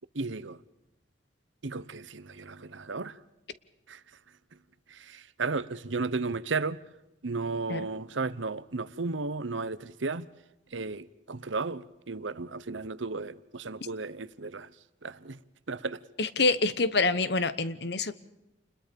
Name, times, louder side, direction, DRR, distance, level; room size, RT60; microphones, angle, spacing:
voice 1, 0.1-0.6 1.6-3.2 3.9-4.0 4.9-6.8 7.2-10.3 10.7-14.7 15.0-15.4 15.7-16.0, right 3 dB, 90° right, 1.0 m, -34 dB
voice 2, 16.2-18.1, left 3 dB, 60° left, 1.1 m, -26 dB
29.0 x 21.0 x 5.3 m
head